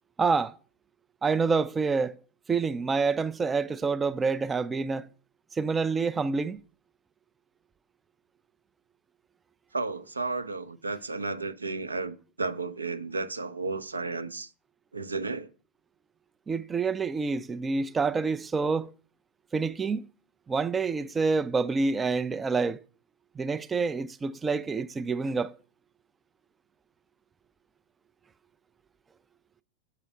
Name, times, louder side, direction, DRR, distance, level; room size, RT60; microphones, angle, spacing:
voice 1, 0.2-0.6 1.2-2.2 2.5-5.1 5.5-6.6 16.5-18.9 19.5-20.1 20.5-22.8 23.4-25.5, right 4 dB, 15° right, 0.3 m, -27 dB
voice 2, 9.7-14.5 14.9-15.5, right 3 dB, 80° right, 0.5 m, -33 dB
6.9 x 4.9 x 6.2 m
figure-of-eight pair, 90°, 0 cm